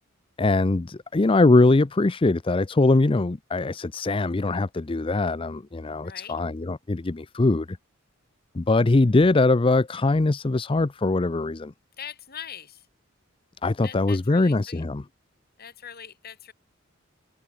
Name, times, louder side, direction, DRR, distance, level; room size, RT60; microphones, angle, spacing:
voice 1, 0.4-7.8 8.5-11.7 13.6-15.0, left 2 dB, 25° left, 0.5 m, -22 dB
voice 2, 6.0-6.4 12.0-12.9 13.8-14.8 15.6-16.5, left 8 dB, 45° left, 2.7 m, -41 dB
head